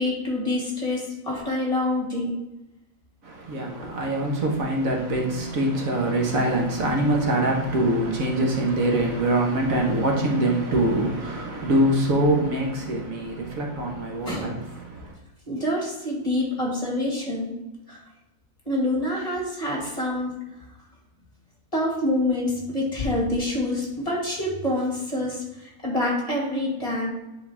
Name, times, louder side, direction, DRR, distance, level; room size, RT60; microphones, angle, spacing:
voice 1, 0.0-2.3 3.8-4.0 14.2-14.6 15.5-17.5 17.9-18.0 18.7-20.3 21.7-27.1, left 1 dB, 25° left, 2.1 m, -26 dB
voice 2, 3.2-15.1, right 1 dB, 70° right, 1.7 m, -24 dB
9.6 x 4.0 x 3.5 m
omnidirectional pair, 1.5 m